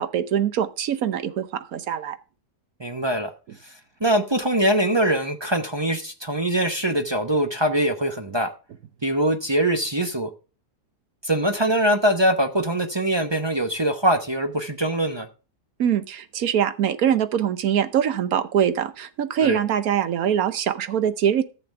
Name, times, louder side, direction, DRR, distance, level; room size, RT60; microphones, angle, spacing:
voice 1, 0.0-2.2 15.8-21.4, right 9 dB, 65° right, 1.3 m, -23 dB
voice 2, 2.8-3.3 4.0-8.5 9.0-10.3 11.2-15.3 19.4-19.6, right 1 dB, 25° right, 0.7 m, -22 dB
14.0 x 6.9 x 3.3 m
omnidirectional pair, 1.7 m